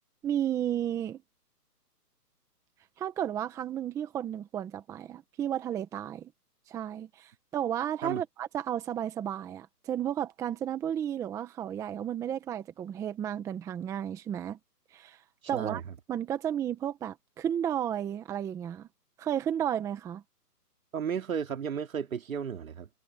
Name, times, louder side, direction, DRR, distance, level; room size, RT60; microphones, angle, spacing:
voice 1, 0.2-1.2 3.0-6.3 6.7-14.6 14.9-15.2 15.5-15.8 16.1-18.9 19.2-20.2, right 10 dB, 5° right, 1.2 m, -33 dB
voice 2, 15.5-15.9 20.9-22.9, right 7 dB, 55° right, 2.8 m, -34 dB
hypercardioid pair, 155°, 48 cm